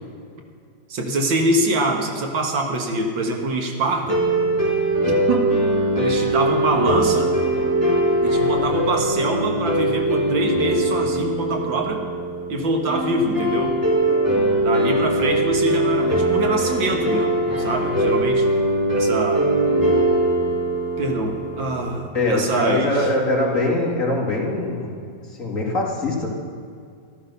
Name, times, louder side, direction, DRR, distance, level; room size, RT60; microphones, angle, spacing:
voice 1, 0.9-4.2 5.1-5.6 6.0-7.4 8.2-12.0 12.5-13.7 14.6-18.5 18.9-19.5 21.0-23.1, right 2 dB, 80° right, 3 dB, 2.2 m, -24 dB
sound 1, 4.0-22.1, right 1 dB, 10° right, 3.8 m, -21 dB
voice 2, 22.1-24.9 25.4-26.3, left 2 dB, 40° left, -2 dB, 2.6 m, -22 dB
13.5 x 13.0 x 5.6 m, 2.2 s
omnidirectional pair, 2.1 m